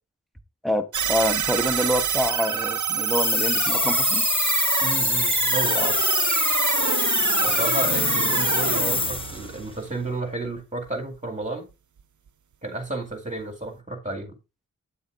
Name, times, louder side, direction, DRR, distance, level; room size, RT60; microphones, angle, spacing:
voice 1, 0.6-4.3 5.8-5.9, equal, ahead, 0.9 m, -26 dB
sound 1, 0.9-10.2, right 8 dB, 60° right, 0.6 m, -27 dB
sound 2, 3.0-9.5, left 3 dB, 20° left, 0.3 m, -24 dB
voice 2, 4.8-6.0 7.4-11.7 12.6-14.4, right 2 dB, 20° right, 2.1 m, -32 dB
8.8 x 7.0 x 2.5 m
wide cardioid pair, 50°, 33 cm